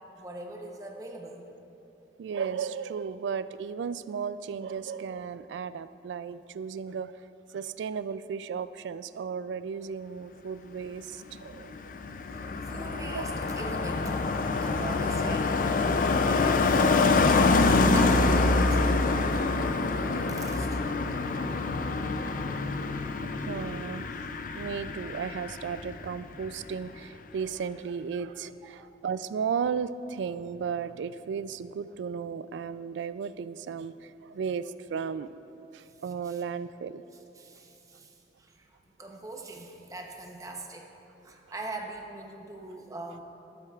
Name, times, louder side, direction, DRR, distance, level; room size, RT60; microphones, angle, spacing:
voice 1, 0.2-1.5 12.2-12.4 12.7-14.3 14.5-17.3 17.9-21.3 21.5-21.6 22.6-23.4 28.8-28.9 35.9-36.4 37.3-38.7 39.0-40.9 41.2-43.2, right 2 dB, 20° right, 1 dB, 0.8 m, -42 dB
voice 2, 2.2-7.1 7.5-11.7 12.4-12.6 13.1-13.3 23.3-24.2 24.5-35.3 35.7-37.0, right 6 dB, 85° right, 14 dB, 0.3 m, -35 dB
Car passing by, 11.4-26.1 26.4-26.7, left 3 dB, 50° left, 0.4 m, -26 dB
13.0 x 12.5 x 2.4 m, 3.0 s
head